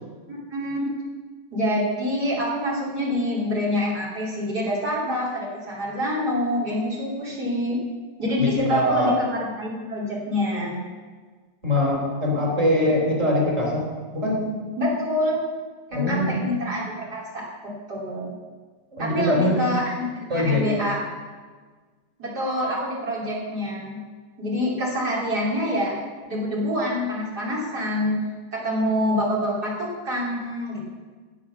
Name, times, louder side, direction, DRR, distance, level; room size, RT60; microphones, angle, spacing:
voice 1, 0.3-0.8 1.5-7.8 8.2-10.8 14.8-15.4 15.9-18.3 19.0-21.0 22.2-24.0 24.4-25.9 26.3-28.2 28.5-30.8, left 1 dB, 60° right, -5 dB, 3.6 m, -26 dB
voice 2, 8.4-9.1 11.6-13.8 14.1-14.4 15.9-16.5 18.9-19.6 20.3-20.7, left 1 dB, 35° right, -2 dB, 4.2 m, -22 dB
16.5 x 7.9 x 6.0 m, 1.4 s
omnidirectional pair, 1.9 m